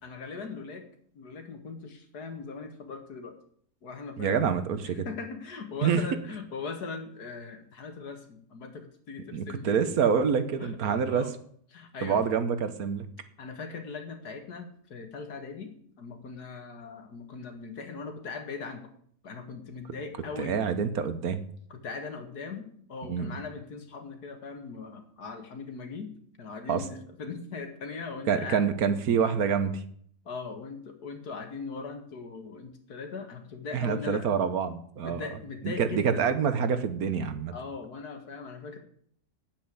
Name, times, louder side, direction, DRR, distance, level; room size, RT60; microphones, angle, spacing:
voice 1, 0.0-0.8 1.1-3.4 3.8-4.5 4.8-9.8 10.6-10.7 11.1-11.3 11.7-12.2 13.4-18.9 19.2-20.6 21.7-26.1 26.4-28.6 30.3-34.3 35.0-36.3 37.5-38.8, left 4 dB, 80° left, 6 dB, 2.2 m, -40 dB
voice 2, 4.2-5.0 5.8-6.0 9.3-11.3 12.0-13.1 20.4-21.4 23.1-23.4 26.7-26.8 28.3-29.8 33.7-35.3 35.6-37.5, right 6 dB, 70° right, 11 dB, 1.5 m, -27 dB
9.0 x 8.8 x 7.8 m, 0.62 s
omnidirectional pair, 1.6 m